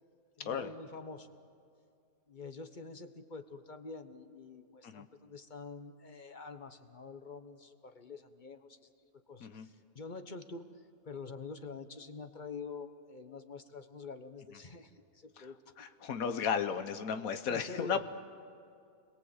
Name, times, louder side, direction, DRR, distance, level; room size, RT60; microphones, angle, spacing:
voice 1, 0.4-1.3 2.3-8.9 9.3-15.6 17.5-18.0, left 4 dB, 35° left, 9 dB, 1.2 m, -46 dB
voice 2, 15.8-18.1, left 7 dB, 80° left, 9 dB, 1.4 m, -34 dB
28.0 x 22.0 x 8.0 m, 2.4 s
omnidirectional pair, 1.5 m